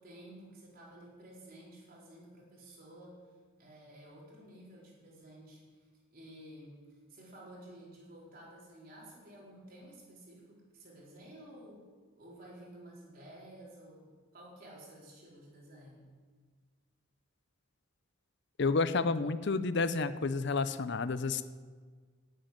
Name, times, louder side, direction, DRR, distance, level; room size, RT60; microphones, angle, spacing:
voice 1, 0.0-3.2 3.6-5.9 6.1-11.8 12.1-16.1, right 1 dB, 45° right, -4 dB, 4.2 m, -53 dB
voice 2, 18.6-21.4, left 4 dB, 55° left, 12 dB, 0.6 m, -30 dB
11.0 x 9.0 x 9.3 m, 1.5 s
head